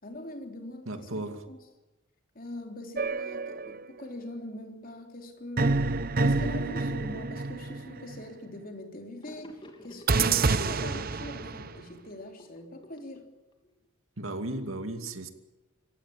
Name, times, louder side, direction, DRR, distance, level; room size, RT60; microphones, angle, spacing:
voice 1, 0.0-1.1 1.5-1.6 2.4-5.9 6.2-13.4, left 1 dB, 45° left, 4 dB, 3.5 m, -42 dB
voice 2, 0.9-1.4 14.2-15.3, right 2 dB, 80° right, 7 dB, 2.5 m, -35 dB
sound 1, 3.0-4.0 5.6-8.2 10.1-11.8, right 3 dB, 45° right, 0.8 m, -28 dB
Gurgling / Sink (filling or washing), 9.2-13.7, left 1 dB, 25° left, 3.4 m, -50 dB
26.0 x 16.0 x 8.7 m, 1.1 s
head